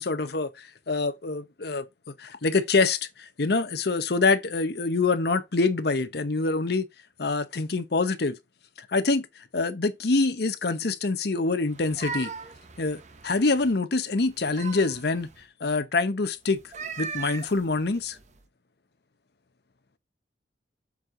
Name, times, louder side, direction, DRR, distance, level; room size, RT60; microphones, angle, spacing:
voice 1, 0.0-1.8 2.2-6.8 7.2-8.4 8.8-9.3 9.5-12.3 12.8-15.3 15.6-18.2, left 3 dB, 60° left, 0.8 m, -25 dB
sound 1, 11.7-13.8 14.2-15.4 16.6-18.4, right 5 dB, 40° right, 0.8 m, -39 dB
7.3 x 4.5 x 3.7 m
head